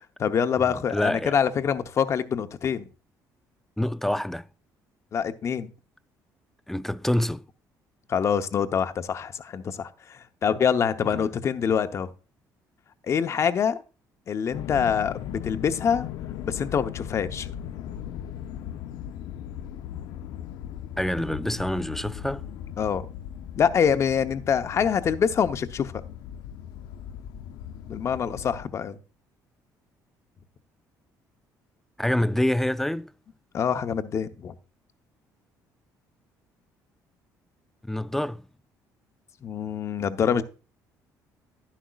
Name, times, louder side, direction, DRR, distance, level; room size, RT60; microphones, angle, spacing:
voice 1, 0.2-2.9 5.1-5.7 8.1-12.1 13.0-13.8 14.3-16.1 16.4-17.5 22.8-23.1 23.6-25.9 27.9-29.0 33.5-34.5 39.4-40.4, left 7 dB, 45° left, 0.8 m, -25 dB
voice 2, 0.9-1.4 3.8-4.5 6.7-7.4 11.1-11.3 21.0-22.4 32.0-33.1 37.9-38.4, left 1 dB, 5° left, 0.3 m, -26 dB
sound 1, 14.5-28.6, left 10 dB, 80° left, 0.5 m, -38 dB
11.0 x 10.0 x 2.4 m
cardioid pair, 115°, 7 cm